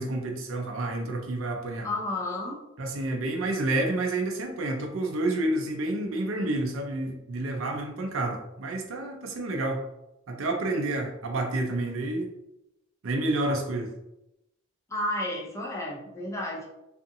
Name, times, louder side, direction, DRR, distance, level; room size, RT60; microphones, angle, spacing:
voice 1, 0.0-1.9 2.8-9.8 10.3-12.3 13.0-13.9, right 2 dB, 70° right, 3 dB, 0.5 m, -29 dB
voice 2, 1.8-2.6 14.9-16.7, left 1 dB, 15° left, -2 dB, 0.5 m, -31 dB
2.6 x 2.5 x 2.6 m, 0.88 s
head